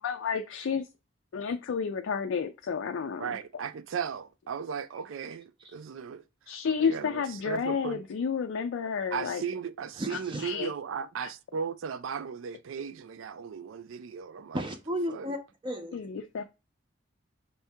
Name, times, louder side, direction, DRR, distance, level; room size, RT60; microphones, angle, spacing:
voice 1, 0.0-0.9 1.3-3.4 6.5-9.4 10.1-10.7 11.2-11.3 12.8-12.9 15.9-16.4, left 6 dB, 85° left, 0.4 m, -31 dB
voice 2, 3.2-6.2 6.5-8.0 9.1-14.6 15.1-15.3, right 6 dB, 90° right, 0.4 m, -36 dB
voice 3, 10.0-10.4 14.5-16.0, equal, 25° right, 0.5 m, -34 dB
5.3 x 2.7 x 3.5 m
head